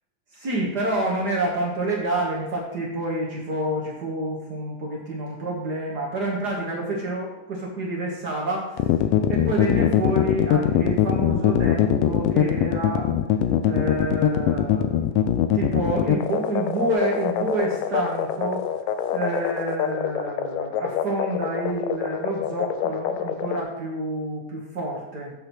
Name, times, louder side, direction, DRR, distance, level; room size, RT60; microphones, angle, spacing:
voice 1, 0.3-8.9 9.3-13.1 13.6-18.7 19.1-25.3, right 1 dB, 60° right, -2 dB, 1.0 m, -28 dB
sound 1, 8.8-23.6, left 10 dB, 85° left, 2.2 m, -22 dB
8.4 x 4.4 x 6.2 m, 0.97 s
omnidirectional pair, 3.7 m